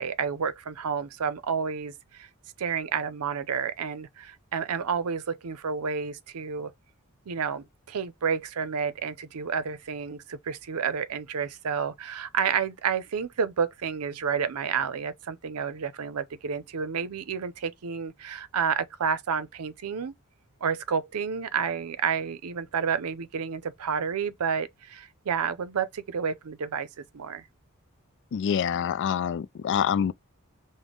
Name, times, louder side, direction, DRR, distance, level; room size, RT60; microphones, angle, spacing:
voice 1, 0.0-2.3 2.6-6.7 7.3-20.1 20.6-27.4, right 6 dB, 80° right, 0.5 m, -30 dB
voice 2, 28.3-30.1, left 8 dB, 55° left, 0.3 m, -26 dB
5.2 x 2.1 x 3.7 m
head